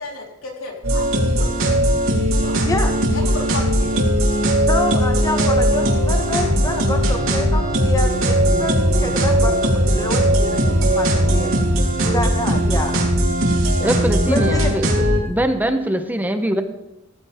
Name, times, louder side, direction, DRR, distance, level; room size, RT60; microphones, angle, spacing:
voice 1, 0.0-1.7 2.3-2.6 3.1-4.1, left 2 dB, 80° left, -1 dB, 3.8 m, -33 dB
sound 1, 0.8-15.2, right 1 dB, 80° right, 3.3 m, -18 dB
voice 2, 2.6-3.0 4.5-11.5 12.0-13.1 14.3-14.7, left 1 dB, 15° left, 4 dB, 1.4 m, -27 dB
sound 2, 5.5-13.3, left 1 dB, 60° right, 4.5 m, -33 dB
voice 3, 13.8-16.6, right 1 dB, 10° right, 7 dB, 0.8 m, -22 dB
16.5 x 15.0 x 3.5 m, 0.90 s
head